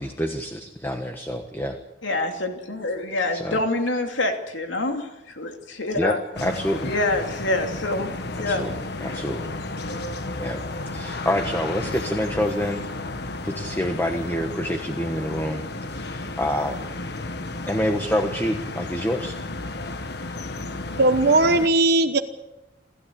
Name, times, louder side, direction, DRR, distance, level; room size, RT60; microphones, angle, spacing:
voice 1, 0.0-1.8 3.3-3.6 5.9-6.2 6.4-6.9 8.3-8.7 9.0-9.5 10.4-10.6 10.9-12.9 13.4-15.6 15.9-16.8 17.7-19.4, equal, 10° left, 6 dB, 1.3 m, -27 dB
voice 2, 2.0-6.2 6.8-8.6 9.0-9.2, left 2 dB, 85° left, 4 dB, 2.8 m, -26 dB
sound 1, 6.3-21.7, left 2 dB, 60° left, 1.5 m, -33 dB
voice 3, 21.0-22.2, right 2 dB, 60° right, 7 dB, 1.0 m, -18 dB
28.5 x 13.0 x 8.6 m, 0.97 s
head